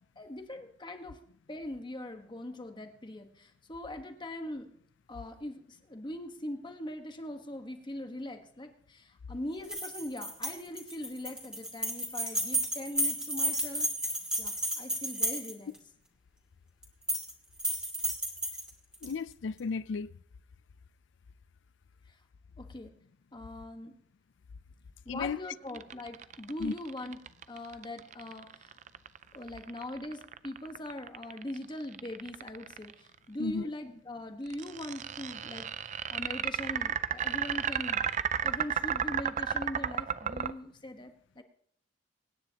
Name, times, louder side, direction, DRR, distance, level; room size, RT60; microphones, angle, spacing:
voice 1, 0.2-1.2 1.5-4.7 5.1-13.9 14.4-15.7 22.6-22.9 23.3-24.0 25.0-27.2 27.5-28.8 29.3-38.1 38.4-41.4, left 1 dB, 25° left, 1.3 m, -41 dB
sound 1, 9.6-15.8 16.8-17.3 17.6-19.1, right 1 dB, 5° right, 2.3 m, -32 dB
voice 2, 19.0-20.1 25.1-25.4 26.6-26.7 33.4-33.6, left 5 dB, 85° left, 0.4 m, -34 dB
sound 2, 25.7-32.9 34.5-40.5, right 8 dB, 40° right, 0.4 m, -33 dB
25.0 x 10.0 x 2.9 m
head